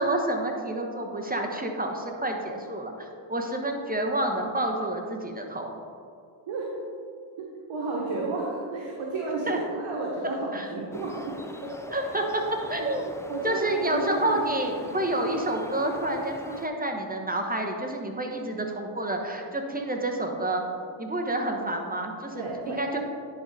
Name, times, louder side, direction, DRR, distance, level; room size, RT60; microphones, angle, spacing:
voice 1, 0.0-5.7 9.5-9.6 10.5-10.7 11.9-12.2 12.7-13.1 13.4-20.6 21.0-23.0, right 1 dB, 15° right, 2 dB, 1.1 m, -29 dB
voice 2, 7.4-11.5 12.8-12.9 13.3-14.9 22.3-23.0, right 2 dB, 70° right, -3 dB, 1.3 m, -32 dB
sound 1, 10.9-16.7, left 1 dB, 5° left, 0.5 m, -44 dB
10.5 x 4.0 x 4.1 m, 2.4 s
supercardioid pair, 55°, 49 cm